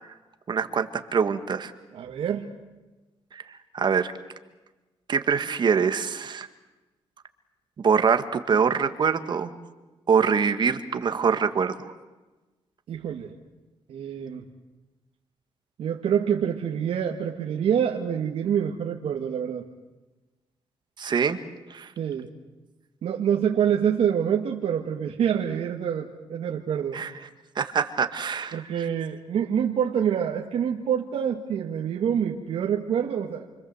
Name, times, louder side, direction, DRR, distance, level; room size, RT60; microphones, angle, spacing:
voice 1, 0.5-1.7 3.3-3.4 3.7-4.1 5.1-6.5 7.8-9.5 10.1-11.9 21.0-21.4 21.7-21.9 26.9-27.1 27.6-28.9, right 6 dB, 45° right, 9 dB, 1.8 m, -24 dB
voice 2, 1.9-2.5 12.9-13.3 13.9-14.4 15.8-19.7 22.0-22.3 23.0-27.0 28.5-33.5, right 8 dB, 75° right, 0 dB, 2.2 m, -26 dB
29.0 x 25.5 x 8.1 m, 1.1 s
cardioid pair, 130°, 10 cm